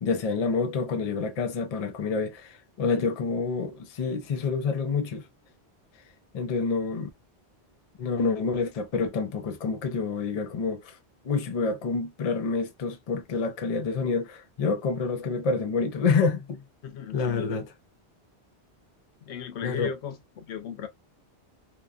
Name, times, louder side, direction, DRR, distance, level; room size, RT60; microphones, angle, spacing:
voice 1, 0.0-5.3 6.3-7.1 8.0-11.0 11.2-16.6 17.1-17.7 19.6-19.9, left 4 dB, 45° left, 0.6 m, -28 dB
voice 2, 16.8-17.6 19.2-20.9, left 7 dB, 85° left, 0.9 m, -36 dB
2.9 x 2.2 x 2.3 m
omnidirectional pair, 1.1 m